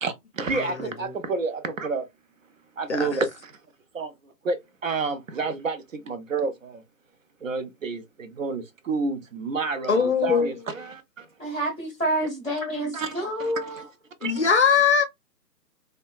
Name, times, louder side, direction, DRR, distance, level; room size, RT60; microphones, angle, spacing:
voice 1, 0.5-1.2 2.9-3.2 9.9-10.5 14.2-15.0, left 6 dB, 45° left, 0.5 m, -22 dB
voice 2, 2.9-3.2 4.0-4.1 4.5-4.6 4.8-5.7 6.3-6.5 7.4-7.9 8.4-8.6 8.9-9.2 9.5-10.5, right 4 dB, 55° right, 0.6 m, -27 dB
voice 3, 11.4-13.9, right 1 dB, 5° right, 0.6 m, -28 dB
2.7 x 2.2 x 2.3 m
hypercardioid pair, 155°, 49 cm